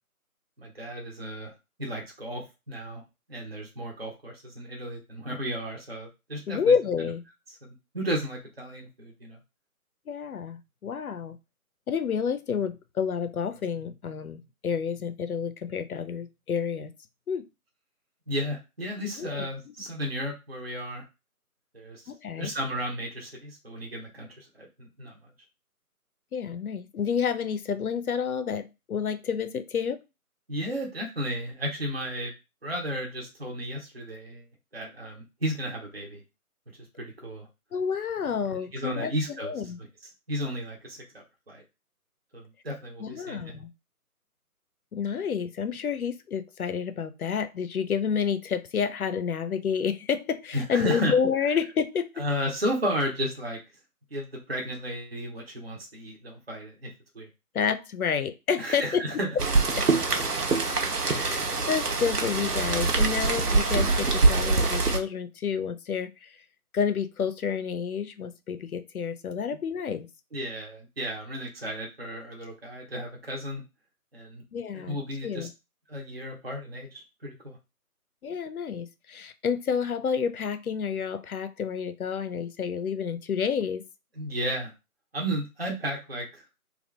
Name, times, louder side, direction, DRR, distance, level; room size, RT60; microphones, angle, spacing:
voice 1, 0.6-1.5 1.8-3.0 3.3-6.7 7.5-9.4 18.3-21.0 21.7-22.0 22.4-25.2 30.5-32.3 32.6-34.4 34.7-36.2 37.0-37.5 38.5-39.5 40.3-41.6 42.3-43.6 50.5-51.2 52.2-53.6 54.1-56.9 57.1-57.3 58.6-59.3 70.3-73.6 74.1-74.4 74.7-75.5 75.9-77.6 84.2-84.7 85.1-86.4, equal, 45° right, 0.6 m, -33 dB
voice 2, 6.5-7.2 10.1-11.4 11.9-16.9 17.3-17.5 19.2-19.5 22.1-22.5 26.3-30.0 37.7-39.1 39.4-39.8 43.0-43.7 44.9-52.1 57.5-59.2 59.7-59.9 61.1-66.3 66.7-70.1 74.5-75.0 75.2-75.5 78.2-83.8, left 6 dB, 70° left, 0.6 m, -29 dB
Rain, 59.4-65.0, right 3 dB, 90° right, 0.9 m, -24 dB
2.8 x 2.4 x 3.2 m
figure-of-eight pair, 170°, 45 cm